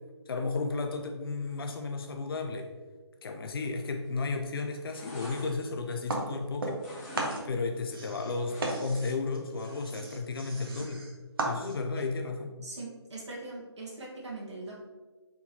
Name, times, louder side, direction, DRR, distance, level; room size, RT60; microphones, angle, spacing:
voice 1, 0.3-2.7 3.2-6.8 7.4-11.0 11.4-12.5, left 3 dB, 55° left, 4 dB, 0.5 m, -33 dB
sound 1, 4.0-4.3 4.6-6.4 6.7-7.4 7.7-9.1 9.5-9.6, left 1 dB, 20° left, 1.2 m, -46 dB
sound 2, 6.1-6.9 7.1-12.0, right 2 dB, 50° right, 0.9 m, -36 dB
voice 2, 12.6-14.7, right 2 dB, 75° right, -5 dB, 1.3 m, -41 dB
4.7 x 3.7 x 2.8 m, 1.3 s
hypercardioid pair, 165°, 15 cm